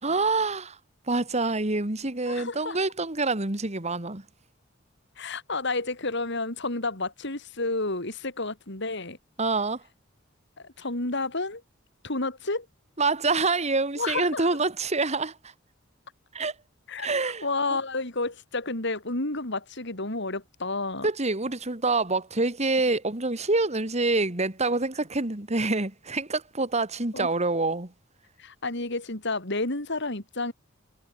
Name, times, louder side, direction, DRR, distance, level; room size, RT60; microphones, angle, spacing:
voice 1, 0.0-0.8 1.1-4.2 9.4-9.8 13.0-15.5 16.3-16.6 17.0-17.8 21.0-27.9, right 3 dB, 35° right, 2.4 m, -26 dB
voice 2, 2.3-2.8 5.2-9.2 10.6-11.6 12.0-12.7 14.0-14.5 16.9-17.1 17.4-21.1 27.1-27.3 28.4-30.5, left 2 dB, 60° left, 4.5 m, -30 dB
head